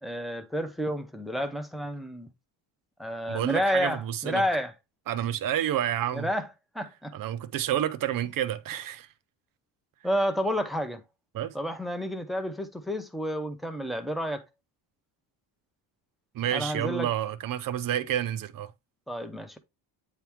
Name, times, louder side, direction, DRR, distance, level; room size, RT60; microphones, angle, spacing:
voice 1, 0.0-2.3 3.0-4.7 6.1-6.5 6.7-7.1 10.0-11.0 11.5-14.4 16.5-17.1 19.1-19.6, equal, ahead, 0.8 m, -30 dB
voice 2, 3.3-4.4 5.1-6.3 7.1-9.1 11.3-11.5 16.3-18.7, right 11 dB, 50° right, 0.7 m, -29 dB
8.9 x 3.0 x 3.5 m
cardioid pair, 140°, 44 cm